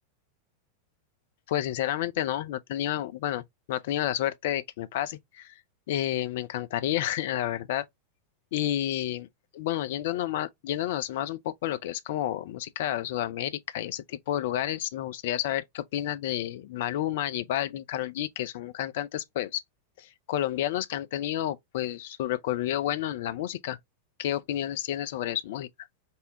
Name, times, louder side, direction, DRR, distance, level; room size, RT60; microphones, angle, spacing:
voice 1, 1.5-5.6 5.9-7.9 8.5-9.3 9.5-19.6 20.0-23.8 24.2-25.7, left 12 dB, 55° left, 0.4 m, -30 dB
5.4 x 2.1 x 2.7 m
figure-of-eight pair, 90°, 0 cm